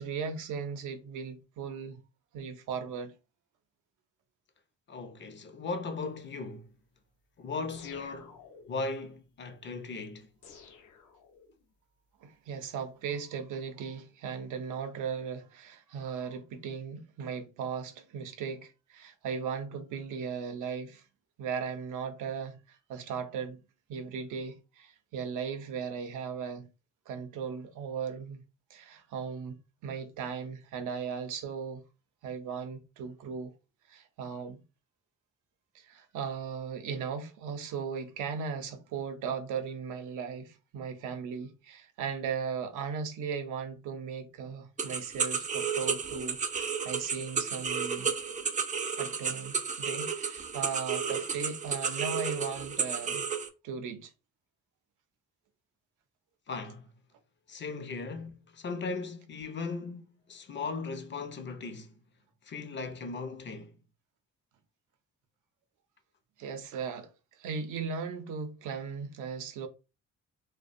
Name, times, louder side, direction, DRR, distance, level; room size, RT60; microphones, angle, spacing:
voice 1, 0.0-2.0 2.3-3.2 12.2-21.0 21.4-23.6 23.9-26.7 27.1-28.4 28.7-29.6 29.8-31.8 32.2-33.5 33.9-34.6 35.7-48.1 49.0-53.2 53.6-54.1 66.4-67.1 67.4-69.7, right 6 dB, 85° right, 0.6 m, -37 dB
voice 2, 4.9-6.7 7.4-8.4 8.7-10.3 56.5-56.9 57.5-62.0 62.4-63.8, left 4 dB, 40° left, 0.5 m, -38 dB
sound 1, 7.7-8.9 10.4-11.7, left 6 dB, 75° left, 0.7 m, -52 dB
sound 2, 44.8-53.5, right 6 dB, 25° right, 0.4 m, -32 dB
2.4 x 2.2 x 2.5 m
cardioid pair, 90°, 30 cm